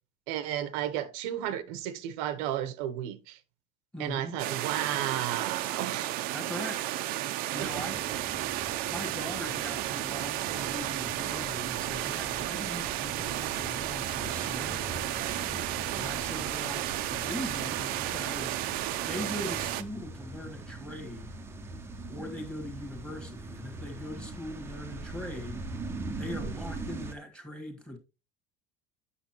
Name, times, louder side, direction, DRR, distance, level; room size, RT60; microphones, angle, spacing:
voice 1, 0.3-3.4 4.0-6.1 7.6-7.8, right 11 dB, 80° right, 0.9 m, -33 dB
voice 2, 3.9-4.4 6.3-6.8 7.5-8.0 8.9-15.3 15.9-18.6 19.1-21.4 22.1-25.6 26.1-28.0, left 1 dB, 5° left, 1.5 m, -41 dB
sound 1, 4.4-19.8, right 14 dB, 50° right, 0.6 m, -33 dB
sound 2, 7.6-27.1, right 2 dB, 15° right, 0.7 m, -42 dB
8.2 x 6.3 x 3.0 m
cardioid pair, 175°, 18 cm